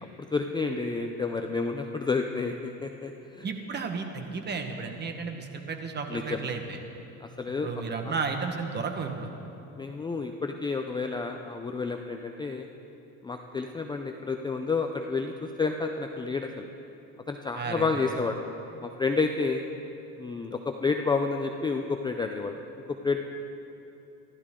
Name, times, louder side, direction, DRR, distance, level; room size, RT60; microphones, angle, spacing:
voice 1, 0.2-3.5 6.1-6.4 7.2-7.8 9.8-12.7 13.2-16.7 17.3-18.4 18.8-19.6 20.2-22.5 22.9-23.2, left 4 dB, 15° left, 4 dB, 0.5 m, -30 dB
voice 2, 3.4-6.8 7.6-9.3 17.5-18.2, right 5 dB, 30° right, 5 dB, 1.3 m, -33 dB
26.5 x 12.5 x 3.7 m, 2.9 s
cardioid pair, 145°, 36 cm